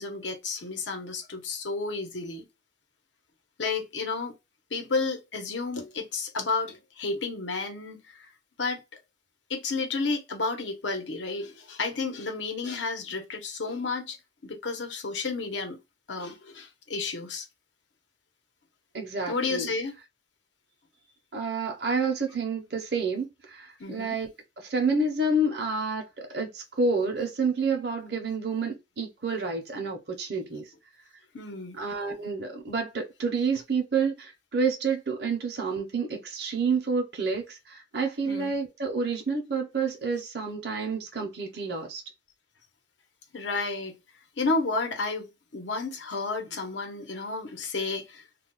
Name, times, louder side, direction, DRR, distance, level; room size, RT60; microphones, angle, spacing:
voice 1, 0.0-2.4 3.6-4.3 4.7-8.0 8.6-8.8 9.5-14.2 14.4-15.8 16.1-17.5 19.3-19.9 23.8-24.2 31.3-31.8 38.3-38.5 43.3-44.0 44.4-48.2, left 3 dB, 90° left, 0.8 m, -31 dB
voice 2, 18.9-19.7 21.3-24.3 24.7-30.6 31.8-42.0, right 4 dB, 60° right, 0.7 m, -29 dB
2.3 x 2.2 x 3.8 m
head